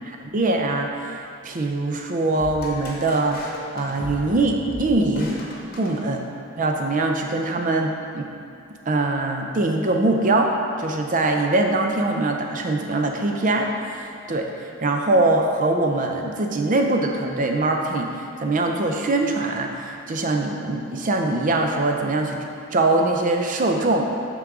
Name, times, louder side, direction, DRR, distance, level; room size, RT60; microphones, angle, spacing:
voice 1, 0.3-3.5 3.7-5.4 5.7-6.2 6.6-8.3 8.9-10.5 10.8-14.5 14.8-18.1 18.4-22.4 22.7-24.0, right 2 dB, 40° right, 2 dB, 0.6 m, -22 dB
sound 1, 2.4-6.6, left 1 dB, 45° left, 0.9 m, -38 dB
6.3 x 3.8 x 6.0 m, 2.5 s
head